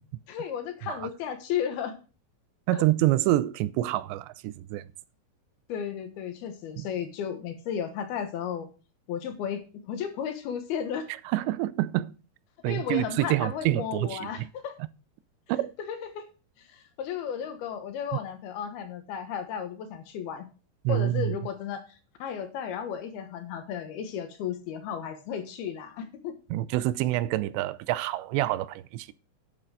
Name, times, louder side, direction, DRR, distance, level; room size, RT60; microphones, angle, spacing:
voice 1, 0.3-2.0 2.7-2.8 5.7-8.7 9.1-11.1 12.7-14.8 15.9-16.2 16.6-20.5 20.9-26.3, left 8 dB, 70° left, 3.0 m, -34 dB
voice 2, 2.7-4.9 6.8-6.9 11.3-12.1 12.6-14.5 15.5-15.7 20.8-21.4 26.5-29.1, right 15 dB, 85° right, 2.9 m, -27 dB
11.0 x 7.6 x 4.8 m
omnidirectional pair, 5.0 m